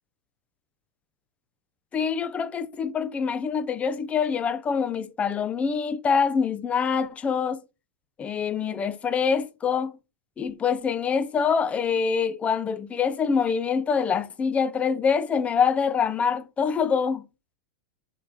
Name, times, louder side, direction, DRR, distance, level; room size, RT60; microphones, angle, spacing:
voice 1, 1.9-7.6 8.2-10.0 10.4-17.2, left 6 dB, 15° left, 0.6 m, -25 dB
7.7 x 4.6 x 3.6 m
supercardioid pair, 150°, 8 cm